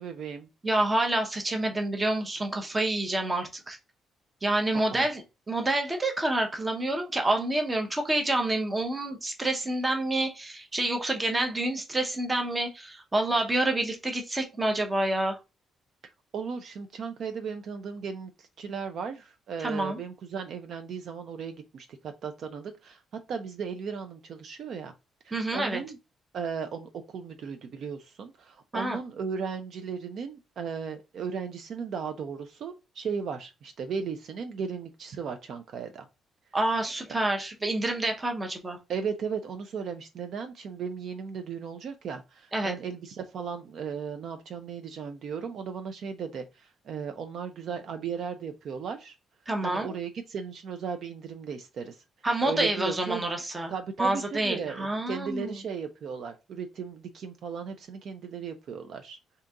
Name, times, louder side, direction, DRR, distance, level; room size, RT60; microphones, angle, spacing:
voice 1, 0.0-0.5 4.9-5.1 16.0-23.0 23.3-24.9 25.2-26.0 26.3-36.1 38.9-49.2 49.6-52.0 52.4-53.2 53.7-59.2, right 6 dB, 50° right, 0.4 m, -36 dB
voice 2, 0.6-3.8 4.4-5.2 5.5-15.4 19.6-20.0 25.3-25.8 28.7-29.0 36.5-38.8 42.5-42.7 49.5-49.9 52.2-53.7 54.0-55.6, right 1 dB, 15° right, 0.7 m, -28 dB
3.8 x 2.8 x 3.4 m
cardioid pair, 165°, 0 cm